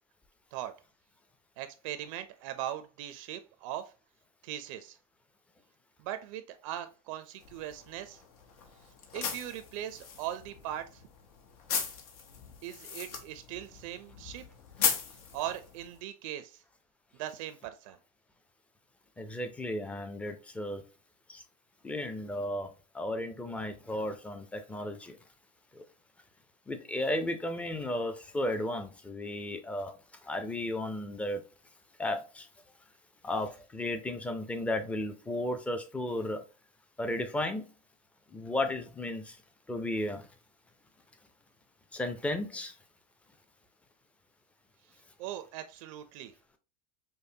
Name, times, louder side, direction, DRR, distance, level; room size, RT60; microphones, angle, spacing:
voice 1, 1.6-3.9 4.4-5.0 6.0-8.2 9.1-11.0 12.6-14.4 15.3-16.6 17.1-18.0 45.2-46.3, right 12 dB, 60° right, 0.5 m, -40 dB
sound 1, 7.4-16.0, left 6 dB, 75° left, 1.0 m, -38 dB
voice 2, 19.2-20.8 21.3-21.4 21.8-25.2 25.7-25.8 26.7-29.9 30.2-31.4 32.0-32.5 33.2-36.4 37.0-37.6 38.3-39.4 39.7-40.3 41.9-42.7, left 1 dB, 5° left, 0.4 m, -34 dB
5.2 x 2.1 x 2.7 m
supercardioid pair, 140°, 19 cm